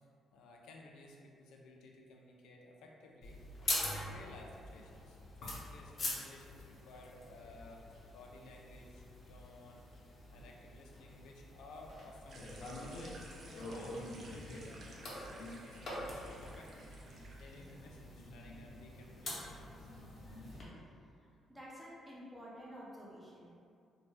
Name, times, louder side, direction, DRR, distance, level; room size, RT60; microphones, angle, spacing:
voice 1, 0.3-3.4 3.9-9.8 10.3-19.9, left 2 dB, 85° left, 0 dB, 0.4 m, -56 dB
sound 1, 3.2-20.6, left 2 dB, 55° left, 0.7 m, -45 dB
sound 2, 12.3-17.8, right 2 dB, 55° right, 0.4 m, -55 dB
voice 2, 21.2-23.7, equal, 10° right, -6 dB, 0.6 m, -51 dB
2.5 x 2.2 x 3.1 m, 2.4 s
cardioid pair, 90°, 0 cm